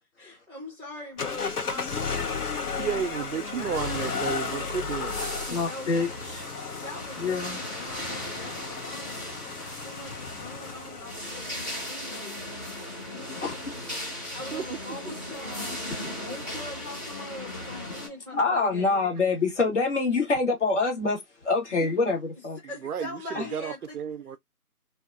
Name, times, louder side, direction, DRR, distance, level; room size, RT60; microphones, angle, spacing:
voice 1, 0.2-4.2 5.6-6.1 6.7-9.3 9.8-12.5 14.3-15.8 16.2-19.0 22.7-24.0, left 2 dB, 10° right, 0.8 m, -42 dB
sound 1, 1.2-11.4, left 5 dB, 80° left, 0.8 m, -34 dB
voice 2, 2.8-5.4 14.5-14.8 22.8-24.4, right 7 dB, 80° right, 0.5 m, -32 dB
sound 2, 3.7-18.1, left 1 dB, 15° left, 1.0 m, -38 dB
voice 3, 5.5-6.4 7.2-7.6 13.3-13.8 18.3-22.6 23.3-23.5, left 3 dB, 50° left, 1.5 m, -26 dB
2.7 x 2.3 x 2.4 m
figure-of-eight pair, 155°, 45 cm